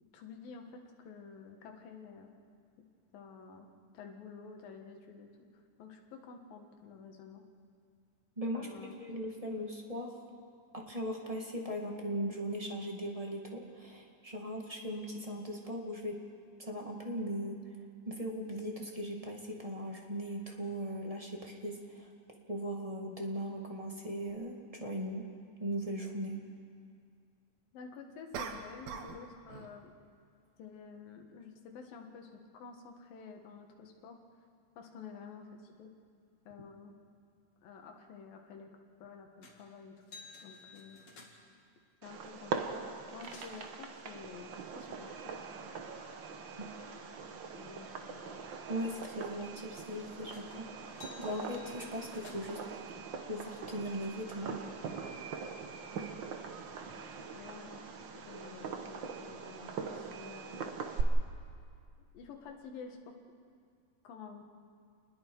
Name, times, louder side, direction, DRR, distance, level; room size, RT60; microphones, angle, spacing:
voice 1, 0.1-2.3 3.1-5.5 5.8-7.4 8.5-9.0 27.7-29.9 30.6-34.2 34.8-35.9 36.5-36.9 37.6-38.7 39.0-39.9 40.4-41.0 42.0-45.3 47.3-48.5 57.0-57.1 57.3-57.9 58.2-60.7 62.1-63.1 64.0-64.4, left 5 dB, 90° left, 3 dB, 3.4 m, -50 dB
voice 2, 8.4-10.1 10.7-16.2 16.6-17.6 18.0-22.1 22.5-25.2 25.6-26.4 46.6-46.7 48.7-52.6 53.3-54.5, equal, 20° right, 0 dB, 1.0 m, -39 dB
sound 1, 24.3-24.4 28.3-29.2 29.5-29.8, right 6 dB, 60° right, 2.2 m, -42 dB
sound 2, 39.4-39.7 40.0-41.6 42.6-42.7 42.9-43.7 50.3-50.6 50.9-52.7 53.4-54.1, left 3 dB, 50° left, 3.3 m, -54 dB
Fireworks, 42.0-61.0, right 5 dB, 85° right, 1.0 m, -42 dB
29.0 x 20.5 x 4.7 m, 2.2 s
omnidirectional pair, 3.9 m